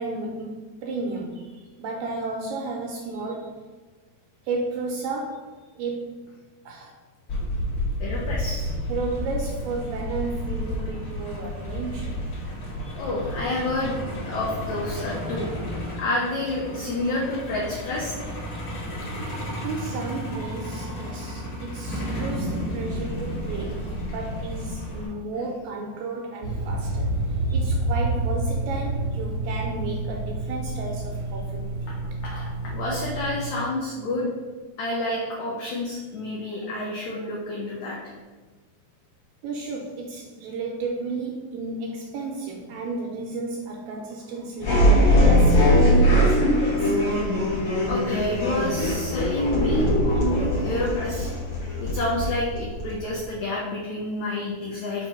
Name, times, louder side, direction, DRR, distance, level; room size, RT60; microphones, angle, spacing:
voice 1, 0.0-3.6 4.4-6.3 6.7-7.0 8.9-12.5 19.6-32.0 39.4-47.0, right 3 dB, 80° right, 0 dB, 2.0 m, -33 dB
Truck, 7.3-25.1, equal, 45° left, 1.7 m, -32 dB
voice 2, 8.0-8.7 12.8-15.5 16.0-18.1 27.5-27.6 32.2-34.3 34.8-38.0 47.9-51.3 51.8-55.1, left 1 dB, 90° left, -4 dB, 1.6 m, -29 dB
sound 1, 26.4-33.4, right 2 dB, 45° right, 0.7 m, -28 dB
sound 2, 44.6-53.2, equal, 60° left, 1.2 m, -21 dB
5.8 x 2.9 x 5.5 m, 1.3 s
omnidirectional pair, 4.5 m